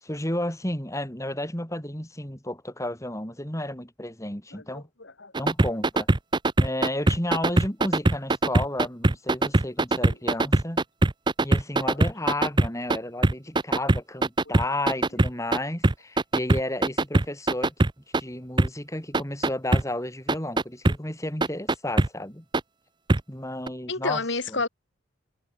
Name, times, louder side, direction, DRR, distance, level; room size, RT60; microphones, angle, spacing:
voice 1, 0.0-4.9 5.4-6.1 6.6-10.8 11.4-17.7 18.2-22.4 23.3-24.2, left 1 dB, 15° left, 5.4 m, -32 dB
voice 2, 4.5-5.3 10.0-10.2 23.9-24.7, left 3 dB, 65° left, 2.7 m, -30 dB
sound 1, 5.3-13.0 13.2-15.6 15.8-18.2 18.6-18.7 19.1-19.8 20.3-21.0 21.4-22.1 22.5-22.6 23.1-23.2 23.7-23.8, right 2 dB, 25° right, 0.7 m, -20 dB
head